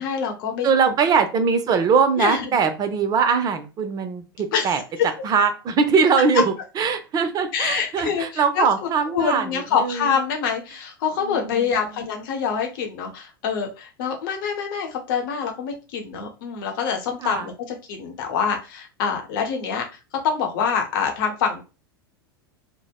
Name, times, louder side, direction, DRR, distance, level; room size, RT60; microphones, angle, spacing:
voice 1, 0.0-0.7 2.2-2.5 4.5-4.8 7.5-19.8 20.2-21.6, left 6 dB, 60° left, 3 dB, 0.8 m, -26 dB
voice 2, 0.6-4.8 5.2-10.1 11.3-12.1 17.2-17.5, right 5 dB, 30° right, 9 dB, 0.5 m, -21 dB
2.7 x 2.0 x 2.3 m, 0.30 s
hypercardioid pair, 90°, 13 cm